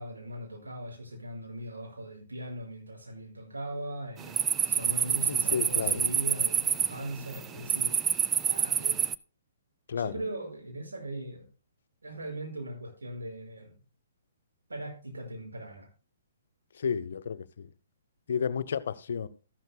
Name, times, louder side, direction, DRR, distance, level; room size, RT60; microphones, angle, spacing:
voice 1, 0.0-4.4 4.7-8.0 8.5-9.0 10.0-11.5 12.0-13.7 14.7-15.9, right 1 dB, 80° right, 5.5 m, -39 dB
sound 1, 4.2-9.1, right 8 dB, 15° right, 0.4 m, -27 dB
voice 2, 5.3-6.0 9.9-10.1 16.8-17.7 18.3-19.3, left 7 dB, 60° left, 0.7 m, -32 dB
14.0 x 12.0 x 2.2 m
figure-of-eight pair, 125°, 0 cm